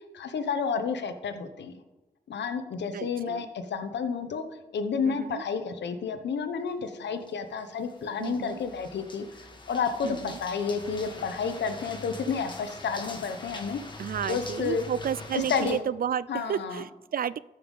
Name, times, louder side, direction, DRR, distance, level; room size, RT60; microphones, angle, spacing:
voice 1, 0.1-1.8 2.3-4.4 4.7-9.2 9.7-13.8 14.3-14.8 15.5-15.8 16.3-16.8, left 5 dB, 85° left, 9 dB, 1.0 m, -30 dB
voice 2, 2.9-3.5 5.0-5.4 8.2-8.6 10.0-10.4 14.0-17.4, right 9 dB, 55° right, 19 dB, 0.4 m, -32 dB
sound 1, 7.2-15.8, left 2 dB, 25° left, 1.7 m, -43 dB
14.0 x 5.7 x 5.5 m, 1.0 s
cardioid pair, 70°, 18 cm